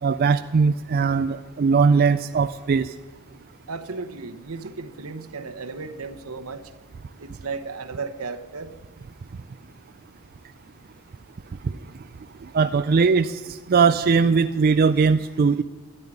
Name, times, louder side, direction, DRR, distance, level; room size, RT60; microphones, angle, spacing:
voice 1, 0.0-2.9 11.6-11.8 12.4-15.6, right 5 dB, 45° right, 10 dB, 0.4 m, -20 dB
voice 2, 3.7-6.7 7.2-8.7, right 4 dB, 75° right, 10 dB, 1.0 m, -35 dB
13.0 x 10.5 x 9.7 m, 1.3 s
head